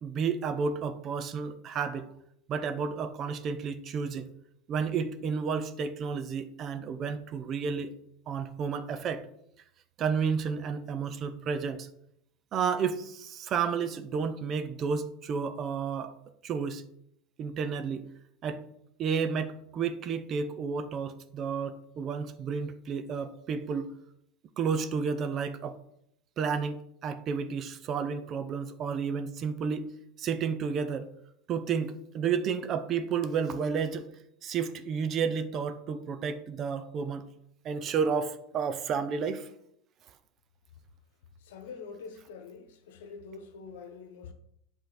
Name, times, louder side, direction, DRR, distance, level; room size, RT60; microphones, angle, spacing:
voice 1, 0.0-2.1 2.5-4.3 4.7-7.9 8.3-9.3 10.0-11.9 12.5-16.1 16.4-16.8 17.4-18.1 18.4-18.7 19.0-23.9 24.6-25.8 26.4-29.9 30.2-31.1 31.5-34.1 34.4-37.3 37.6-39.5, right 6 dB, 40° right, 0.7 m, -31 dB
voice 2, 41.4-44.3, left 5 dB, 80° left, 1.0 m, -45 dB
8.0 x 3.8 x 5.1 m
supercardioid pair, 115°, 0 cm